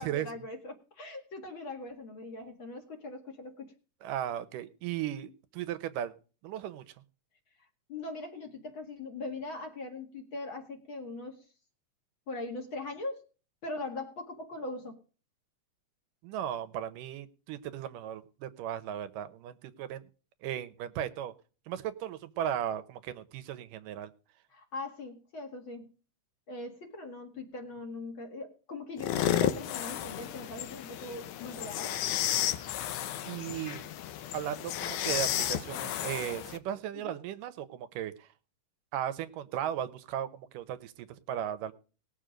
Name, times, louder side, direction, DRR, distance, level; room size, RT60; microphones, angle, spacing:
voice 1, 0.0-3.7 7.9-11.4 12.3-13.2 13.6-15.0 24.5-25.9 26.5-32.0 36.9-37.2, left 2 dB, 45° left, 4 dB, 2.4 m, -41 dB
voice 2, 4.0-6.2 6.4-6.8 16.2-20.0 20.4-21.3 21.7-24.1 33.3-33.9 34.3-38.3 38.9-41.7, right 10 dB, 85° right, 12 dB, 2.5 m, -36 dB
sound 1, 29.0-36.6, left 12 dB, 75° left, 2.3 m, -33 dB
19.0 x 7.2 x 5.0 m, 0.37 s
omnidirectional pair, 3.7 m